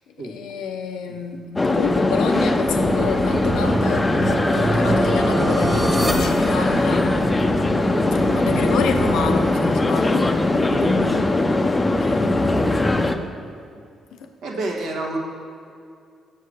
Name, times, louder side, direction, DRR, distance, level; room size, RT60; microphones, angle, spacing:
voice 1, 0.2-7.2 8.1-10.4 11.8-12.7 14.1-14.3, left 5 dB, 85° left, 6 dB, 0.6 m, -29 dB
sound 1, 1.6-13.2, left 2 dB, 20° left, 0.5 m, -20 dB
sound 2, 2.3-7.5, equal, 10° right, 1.2 m, -28 dB
sound 3, 2.7-9.4, right 2 dB, 55° right, 0.8 m, -28 dB
voice 2, 10.7-11.4 13.7-13.8 14.4-15.2, right 2 dB, 80° right, -1 dB, 1.2 m, -29 dB
6.4 x 4.6 x 6.3 m, 2.4 s
cardioid pair, 90°, 0 cm